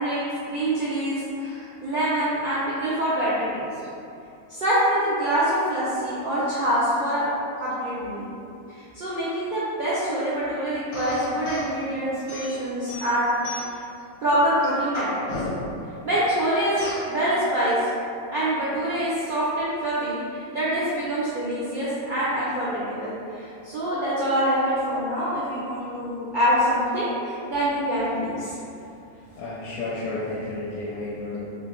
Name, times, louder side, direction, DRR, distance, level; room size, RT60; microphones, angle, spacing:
voice 1, 0.0-3.6 4.5-7.3 7.6-8.3 8.9-13.4 14.2-15.3 16.0-16.8 17.0-17.8 18.3-28.6, right 1 dB, 85° right, -10 dB, 0.4 m, -25 dB
sound 1, 10.9-11.7 12.3-13.9 14.3-15.8 16.8-17.1, left 1 dB, 60° left, 1.1 m, -32 dB
voice 2, 28.8-31.4, left 2 dB, 80° left, -7 dB, 1.1 m, -32 dB
3.1 x 2.7 x 2.9 m, 2.6 s
omnidirectional pair, 1.6 m